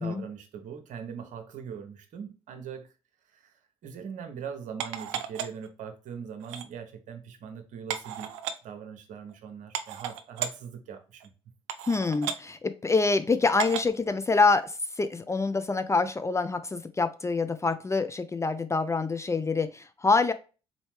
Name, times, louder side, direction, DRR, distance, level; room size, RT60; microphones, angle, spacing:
voice 1, 0.0-2.9 3.3-3.5 3.8-8.3 8.6-11.3, right 7 dB, 55° right, 1.0 m, -41 dB
sound 1, 4.8-5.7 6.4-6.7 7.9-8.5 9.3-9.4 9.7-10.5 11.2-11.3 11.7-12.4 13.6-13.9 14.5-14.6, right 9 dB, 75° right, 0.5 m, -34 dB
voice 2, 11.9-20.3, left 4 dB, 20° left, 0.4 m, -26 dB
4.0 x 3.1 x 3.1 m
figure-of-eight pair, 50°, 16 cm